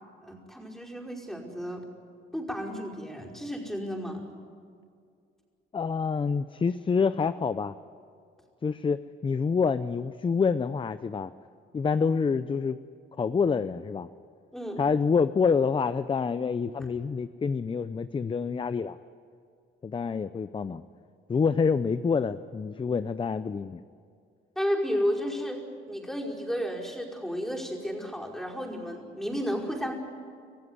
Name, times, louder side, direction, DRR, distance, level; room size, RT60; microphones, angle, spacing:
voice 1, 0.2-1.8 2.3-4.2 14.5-14.8 16.8-16.9 24.6-29.9, equal, ahead, -2 dB, 5.1 m, -32 dB
voice 2, 5.7-7.7 8.6-11.3 11.7-12.8 13.2-14.1 14.8-19.0 19.8-20.8 21.3-23.8, left 5 dB, 25° left, 13 dB, 0.6 m, -27 dB
27.0 x 15.5 x 9.6 m, 2.3 s
cardioid pair, 90°, 20 cm